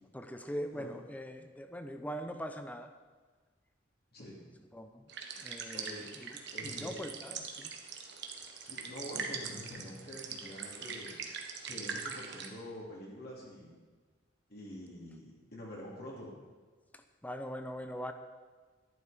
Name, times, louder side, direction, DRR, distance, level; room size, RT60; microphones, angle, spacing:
voice 1, 0.1-2.9 4.7-5.1 5.4-7.7 17.2-18.1, equal, 10° left, 7 dB, 0.7 m, -42 dB
sound 1, 5.1-12.5, right 6 dB, 60° right, 1.3 m, -42 dB
voice 2, 5.7-6.1 6.5-7.0 8.6-11.1 11.6-13.8 14.5-16.3, equal, 50° left, -4 dB, 2.9 m, -46 dB
11.5 x 11.0 x 5.1 m, 1.4 s
head